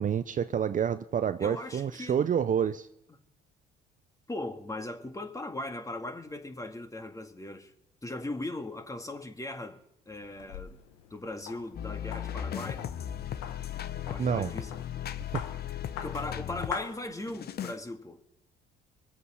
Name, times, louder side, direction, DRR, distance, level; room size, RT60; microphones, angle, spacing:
voice 1, 0.0-2.9 14.2-14.5, right 8 dB, 40° right, 0.6 m, -28 dB
voice 2, 1.4-2.3 4.3-7.7 8.0-10.8 11.1-12.9 14.0-14.9 16.0-18.2, left 2 dB, 15° left, 2.0 m, -39 dB
sound 1, 10.1-17.6, left 9 dB, 85° left, 1.2 m, -45 dB
sound 2, 11.7-16.8 17.3-17.8, left 10 dB, 50° left, 0.9 m, -36 dB
23.5 x 8.2 x 5.8 m
hypercardioid pair, 60°, 20 cm